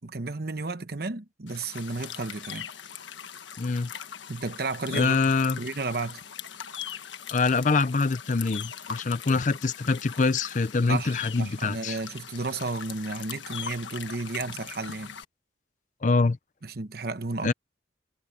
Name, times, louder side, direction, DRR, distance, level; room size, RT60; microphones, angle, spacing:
voice 1, 0.0-2.7 4.3-5.2 5.6-6.2 10.9-15.2 16.6-17.5, right 3 dB, 55° right, 1.0 m, -33 dB
sound 1, 1.5-15.2, left 8 dB, 75° left, 1.4 m, -41 dB
voice 2, 3.6-3.9 4.9-5.6 7.3-12.0 16.0-16.4 17.4-17.5, left 4 dB, 40° left, 0.5 m, -24 dB
head